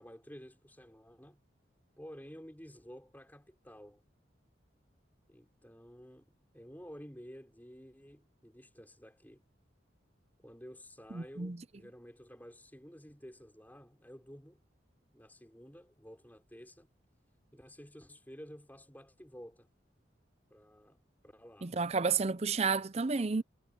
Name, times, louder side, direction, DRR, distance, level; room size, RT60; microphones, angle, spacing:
voice 1, 0.0-1.4 2.0-4.0 5.3-9.4 10.4-14.6 15.1-16.9 17.5-19.7 20.5-21.7, equal, 10° left, 5.8 m, -52 dB
voice 2, 11.1-11.6 21.6-23.4, right 4 dB, 35° right, 0.6 m, -31 dB
head